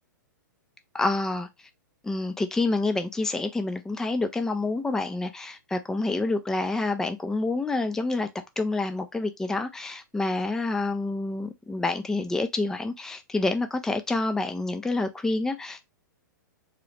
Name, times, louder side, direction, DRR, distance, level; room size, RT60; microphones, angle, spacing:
voice 1, 0.9-1.5 2.0-8.3 8.6-15.9, left 2 dB, 5° left, 0.4 m, -28 dB
3.8 x 3.0 x 3.1 m
figure-of-eight pair, 105°, 11 cm